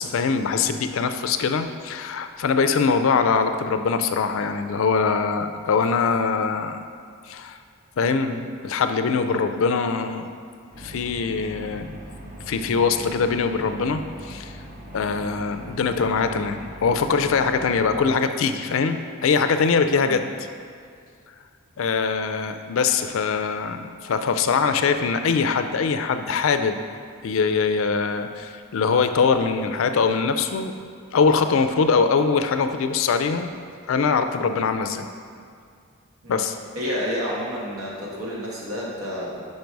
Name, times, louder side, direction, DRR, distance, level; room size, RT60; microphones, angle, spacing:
voice 1, 0.0-6.8 7.3-7.6 8.0-10.3 10.8-11.9 12.5-14.5 14.9-20.5 21.8-26.8 27.2-30.7 31.1-33.5 33.9-35.1 36.3-36.6, left 5 dB, 65° left, 8 dB, 0.4 m, -22 dB
sound 1, 10.7-18.1, equal, 35° right, 0.7 m, -40 dB
voice 2, 36.7-39.4, equal, 80° right, -5 dB, 1.6 m, -30 dB
5.4 x 5.3 x 4.6 m, 2.3 s
head